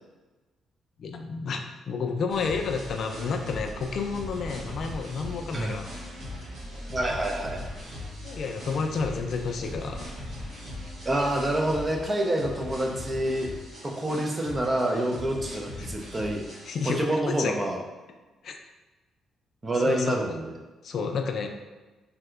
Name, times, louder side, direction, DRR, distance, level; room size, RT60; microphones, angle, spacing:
voice 1, 1.0-5.9 8.2-10.1 15.8-15.9 16.7-17.1 17.4-17.5 18.4-18.5 19.9-20.3 20.8-21.5, left 5 dB, 60° left, 4 dB, 0.3 m, -30 dB
sound 1, 2.3-17.0, left 1 dB, 70° right, 1.2 m, -39 dB
voice 2, 5.5-5.8 6.9-7.6 11.1-13.5 13.8-16.4 17.0-17.8 19.6-20.5, right 1 dB, 30° right, 2 dB, 0.5 m, -27 dB
3.3 x 2.7 x 2.4 m, 1.2 s
cardioid pair, 90°, 0 cm